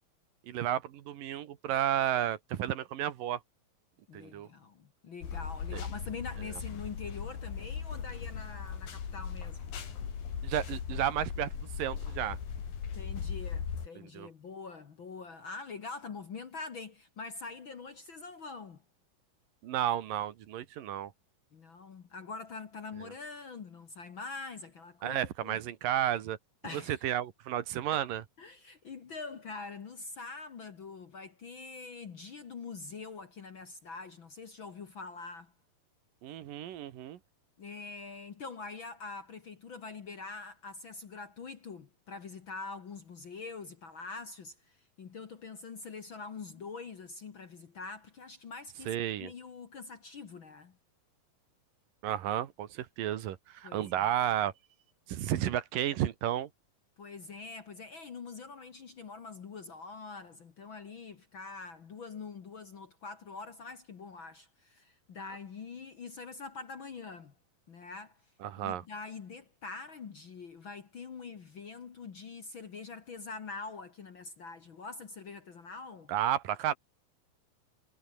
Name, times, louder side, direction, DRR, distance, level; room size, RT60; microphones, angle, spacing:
voice 1, 0.5-3.4 4.1-4.5 5.7-5.8 10.4-11.5 11.8-12.4 14.1-14.3 19.6-21.1 25.0-26.4 26.7-28.2 36.2-37.2 48.9-49.3 52.0-54.5 55.1-56.5 68.4-68.8 76.1-76.7, right 11 dB, 75° right, 3.1 m, -32 dB
voice 2, 4.1-9.6 12.9-18.8 21.5-25.6 26.6-27.0 27.9-28.0 28.4-35.5 37.6-50.8 53.6-54.1 57.0-67.3 67.7-68.3 68.6-76.1, left 4 dB, 45° left, 1.8 m, -44 dB
sound 1, 5.2-13.9, left 7 dB, 80° left, 5.2 m, -38 dB
omnidirectional pair, 4.1 m